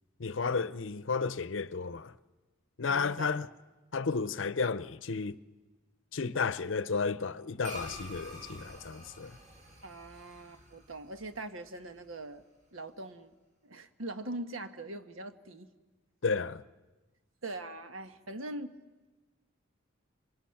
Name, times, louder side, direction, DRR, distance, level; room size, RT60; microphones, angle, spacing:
voice 1, 0.2-2.1 2.8-3.5 3.9-5.4 6.1-9.3 16.2-16.6, left 4 dB, 65° left, 0.7 m, -32 dB
voice 2, 2.9-3.4 9.8-12.4 12.7-13.3 13.6-15.7 17.4-18.7, right 2 dB, 90° right, 1.3 m, -42 dB
sound 1, 7.6-12.3, equal, 40° right, 4.5 m, -48 dB
26.5 x 24.5 x 5.9 m
head